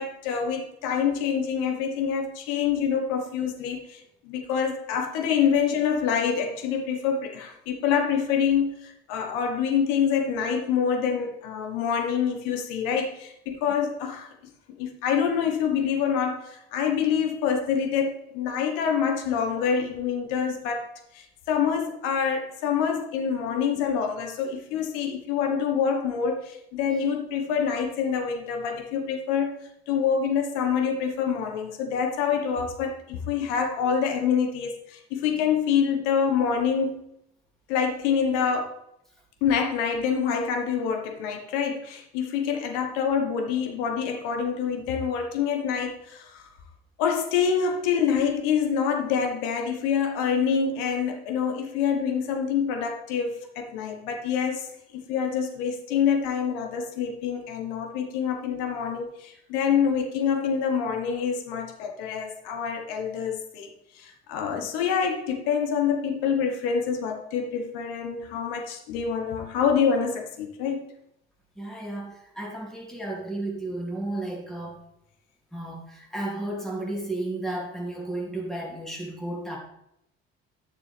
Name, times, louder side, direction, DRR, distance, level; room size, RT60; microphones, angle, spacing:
voice 1, 0.0-14.3 14.8-29.5 29.9-36.9 37.7-38.7 39.4-46.4 47.0-63.7 63.9-70.9, left 7 dB, 70° left, 4 dB, 1.4 m, -26 dB
voice 2, 71.6-74.8 75.5-79.6, right 2 dB, ahead, -2 dB, 2.8 m, -33 dB
11.5 x 6.8 x 3.5 m, 0.78 s
hypercardioid pair, 55°, 33 cm